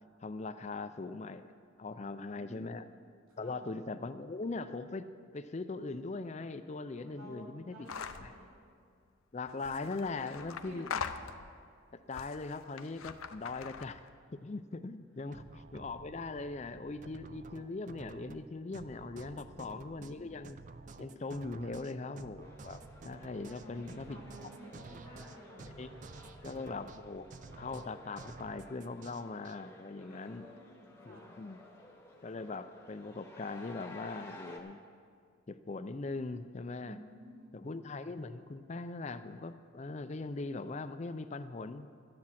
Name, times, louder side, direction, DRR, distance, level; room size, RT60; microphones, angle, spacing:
voice 1, 0.2-1.5 1.8-2.9 3.4-5.1 5.3-7.8 8.2-8.3 9.3-10.9 11.9-14.0 14.3-20.6 21.0-24.5 25.7-25.9 26.4-27.3 27.6-30.5 31.0-31.6 32.2-34.8 35.5-37.0 37.5-41.9, left 3 dB, 30° left, 11 dB, 0.4 m, -40 dB
voice 2, 1.9-2.8 3.3-3.7 6.9-8.5 10.1-11.0 19.3-20.3 23.5-25.6 29.9-31.4 36.8-37.6, right 1 dB, 85° right, -3 dB, 3.0 m, -54 dB
sound 1, 7.9-8.3 9.5-11.7 12.1-14.1, left 6 dB, 85° left, 0.6 m, -42 dB
sound 2, 15.3-29.6, right 3 dB, 35° right, 0.4 m, -51 dB
sound 3, 22.4-34.6, left 2 dB, 10° left, 1.0 m, -54 dB
13.5 x 9.7 x 5.8 m, 2.2 s
head